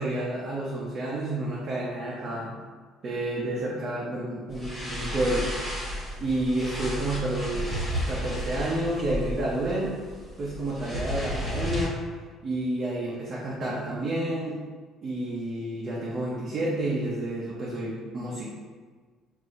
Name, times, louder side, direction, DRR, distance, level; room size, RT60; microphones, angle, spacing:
voice 1, 0.0-2.6 3.0-5.5 6.2-10.0 10.4-12.0 12.4-14.6 15.0-18.5, right 1 dB, 30° right, -5 dB, 0.6 m, -30 dB
sound 1, 4.5-11.9, equal, 10° right, 1.1 m, -33 dB
6.6 x 2.6 x 2.5 m, 1.5 s
cardioid pair, 165°, 0 cm